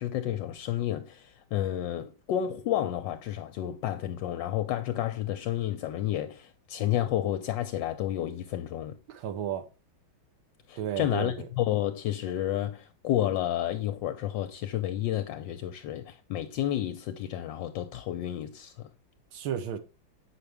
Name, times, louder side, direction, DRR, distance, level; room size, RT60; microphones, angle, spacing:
voice 1, 0.0-9.0 10.7-18.9, left 12 dB, 75° left, 1.2 m, -31 dB
voice 2, 9.1-9.7 10.8-11.5 19.3-19.8, right 9 dB, 90° right, 1.8 m, -33 dB
8.1 x 5.9 x 3.4 m
omnidirectional pair, 2.2 m